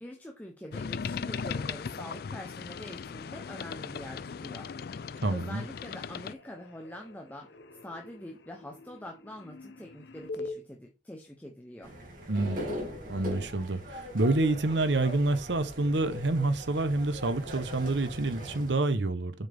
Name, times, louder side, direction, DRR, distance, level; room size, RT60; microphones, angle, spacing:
voice 1, 0.0-5.0 5.3-7.6 7.8-11.9, left 1 dB, 10° left, 0.8 m, -45 dB
sound 1, 0.7-6.3, left 6 dB, 55° left, 0.4 m, -38 dB
voice 2, 5.2-5.6 12.3-12.6 13.1-19.3, right 2 dB, 70° right, 0.9 m, -28 dB
sound 2, 5.5-10.6, left 3 dB, 70° left, 0.9 m, -46 dB
sound 3, 11.8-18.7, equal, 45° right, 2.9 m, -40 dB
7.2 x 5.6 x 3.5 m
head